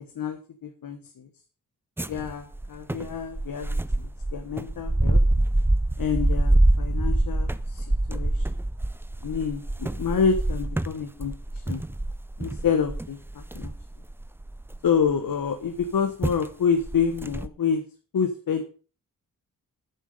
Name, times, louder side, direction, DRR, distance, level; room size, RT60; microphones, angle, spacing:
voice 1, 0.1-1.3 2.1-5.2 6.0-8.4 9.2-11.8 12.4-13.7 14.8-17.8 18.1-18.6, left 6 dB, 80° left, 6 dB, 1.3 m, -28 dB
sound 1, 2.0-15.1 15.8-15.9 16.2-16.5 16.8-17.5, right 1 dB, 5° right, 0.4 m, -25 dB
13.0 x 7.4 x 5.4 m, 0.38 s
wide cardioid pair, 165°, 34 cm